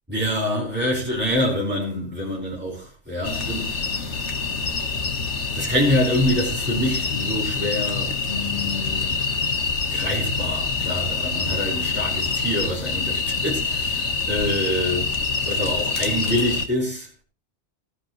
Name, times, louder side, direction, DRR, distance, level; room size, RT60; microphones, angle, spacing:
voice 1, 0.1-3.8 5.5-9.2 9.9-15.1 15.5-17.2, left 1 dB, 10° right, 5.1 m, -26 dB
sound 1, 3.2-16.7, left 4 dB, 75° left, 1.9 m, -26 dB
19.0 x 12.0 x 3.2 m
omnidirectional pair, 1.2 m